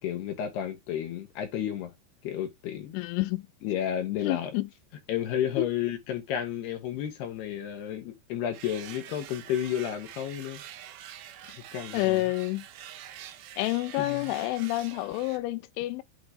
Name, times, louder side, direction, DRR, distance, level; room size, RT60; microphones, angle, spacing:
voice 1, 0.0-1.9 2.2-2.9 3.6-4.5 5.1-10.6 11.7-12.2 14.0-14.4, left 10 dB, 65° left, 3.4 m, -32 dB
voice 2, 2.9-3.4 4.2-4.7 5.6-5.7 11.4-11.5 11.9-12.7 13.6-16.0, left 19 dB, 85° left, 3.1 m, -29 dB
sound 1, 8.5-15.4, right 11 dB, 75° right, 2.1 m, -46 dB
8.9 x 3.9 x 3.3 m
omnidirectional pair, 5.4 m